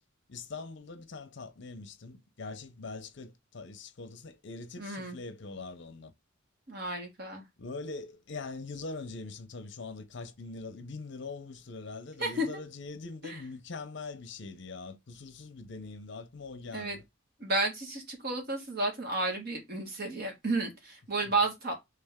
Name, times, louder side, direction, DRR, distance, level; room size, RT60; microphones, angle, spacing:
voice 1, 0.3-6.1 7.6-17.0, left 3 dB, 60° left, 0.7 m, -42 dB
voice 2, 4.8-5.2 6.7-7.4 12.2-12.6 13.2-13.4 16.7-17.0 17.4-21.7, right 2 dB, 50° right, 1.6 m, -32 dB
3.4 x 3.3 x 3.5 m
head